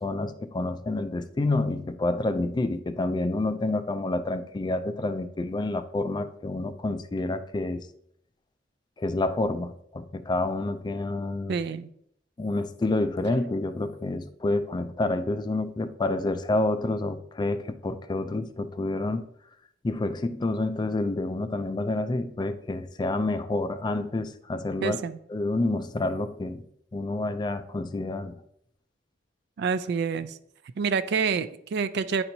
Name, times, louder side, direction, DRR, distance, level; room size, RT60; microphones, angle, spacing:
voice 1, 0.0-7.9 9.0-11.6 12.4-19.3 19.8-25.0 25.3-26.6 26.9-28.4, left 2 dB, 25° left, 0.3 m, -28 dB
voice 2, 11.5-11.9 24.8-25.2 29.6-30.4 30.8-32.2, right 5 dB, 65° right, 0.3 m, -27 dB
9.5 x 4.4 x 2.7 m
head